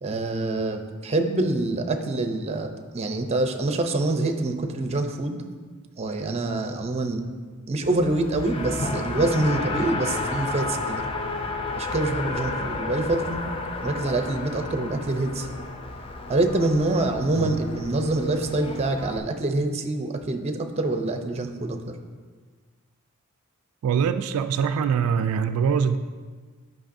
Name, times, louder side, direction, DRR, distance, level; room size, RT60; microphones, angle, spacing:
voice 1, 0.0-5.4 6.0-7.2 7.7-11.0 11.8-13.4 13.8-15.5 16.3-22.0, right 2 dB, 30° right, 6 dB, 0.5 m, -25 dB
Race car auto racing, 7.8-19.2, left 2 dB, 25° left, 0.5 m, -32 dB
voice 2, 23.8-26.0, right 7 dB, 85° right, 13 dB, 0.3 m, -23 dB
9.8 x 5.3 x 2.6 m, 1.5 s
head